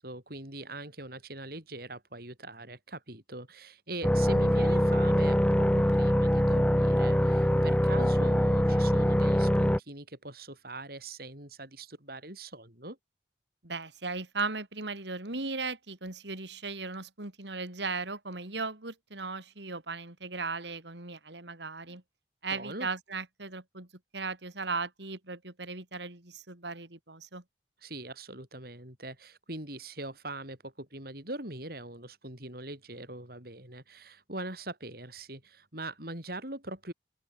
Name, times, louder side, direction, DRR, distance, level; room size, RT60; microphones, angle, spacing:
voice 1, 0.0-13.0 22.5-22.9 27.8-36.9, right 2 dB, 55° right, 7.6 m, -42 dB
sound 1, 4.0-9.8, equal, 5° left, 1.0 m, -24 dB
voice 2, 13.6-22.0 22.4-23.9 24.1-27.4, right 4 dB, 70° right, 3.2 m, -37 dB
open air
head